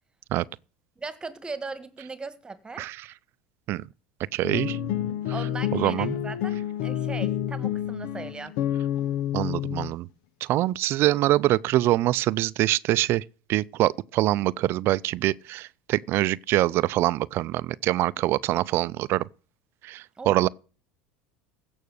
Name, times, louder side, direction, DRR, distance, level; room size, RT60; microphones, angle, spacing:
voice 1, 1.0-2.9 5.3-8.5 20.2-20.5, right 4 dB, 15° right, 1.7 m, -38 dB
voice 2, 4.3-4.8 5.7-6.2 9.3-10.1 10.4-13.2 13.5-19.2 19.8-20.5, right 16 dB, 55° right, 0.5 m, -24 dB
sound 1, 4.4-9.9, left 11 dB, 70° left, 0.9 m, -29 dB
16.0 x 6.3 x 6.5 m
supercardioid pair, 90°, 5 cm